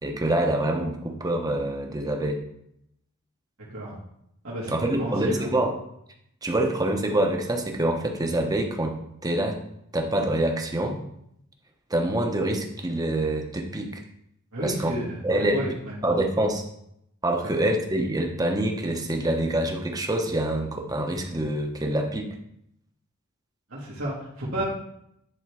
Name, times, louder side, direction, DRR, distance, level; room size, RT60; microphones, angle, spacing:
voice 1, 0.0-2.4 4.7-5.7 6.4-9.0 9.2-9.6 9.9-11.0 11.9-14.0 14.6-14.9 15.2-15.6 16.0-16.6 17.2-22.4, right 1 dB, 20° right, 3 dB, 0.9 m, -26 dB
voice 2, 4.4-5.5 14.5-15.9 17.4-17.5 23.7-24.6, right 1 dB, 80° right, -8 dB, 2.5 m, -32 dB
11.0 x 3.6 x 4.8 m, 0.75 s
head